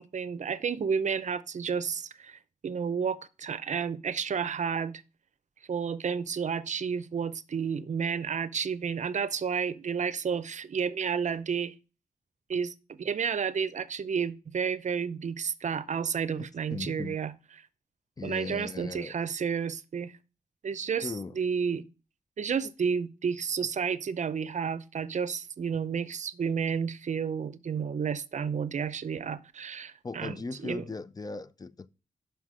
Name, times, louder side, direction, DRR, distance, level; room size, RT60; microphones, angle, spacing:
voice 1, 0.0-4.9 5.7-11.7 12.5-17.3 18.2-20.1 20.6-21.8 22.4-30.8, right 6 dB, 55° right, 0.6 m, -31 dB
voice 2, 16.4-17.2 18.2-19.1 21.0-21.4 30.0-31.9, left 3 dB, 25° left, 0.4 m, -38 dB
5.8 x 5.6 x 6.1 m
wide cardioid pair, 100°, 14 cm